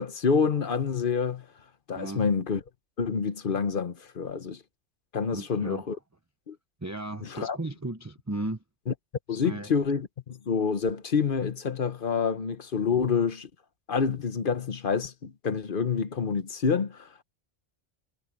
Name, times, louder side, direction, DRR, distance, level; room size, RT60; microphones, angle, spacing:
voice 1, 0.0-1.5 1.9-2.6 3.0-4.6 5.1-6.0 6.5-6.6 7.2-7.6 8.9-9.0 9.3-13.5 13.9-17.2, left 5 dB, 50° left, 1.1 m, -27 dB
voice 2, 5.3-5.9 6.8-8.6 9.3-9.7 12.9-13.0, right 2 dB, 15° right, 0.8 m, -35 dB
omnidirectional pair, 1.2 m